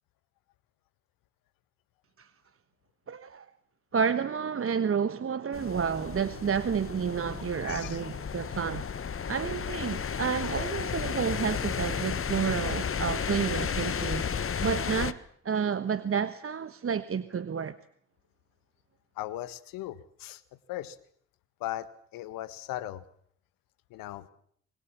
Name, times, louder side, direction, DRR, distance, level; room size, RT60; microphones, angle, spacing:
voice 1, 3.1-3.5 3.9-8.9 9.3-14.2 14.6-15.2 15.4-17.8, right 7 dB, 40° right, 1.3 m, -30 dB
sound 1, 5.5-15.1, left 7 dB, 40° left, 1.4 m, -33 dB
voice 2, 7.6-8.0 10.4-10.8 19.1-20.4 20.7-21.0 21.6-23.0 23.9-24.3, left 14 dB, 75° left, 1.6 m, -38 dB
26.0 x 21.5 x 7.4 m
hypercardioid pair, 50°, 34 cm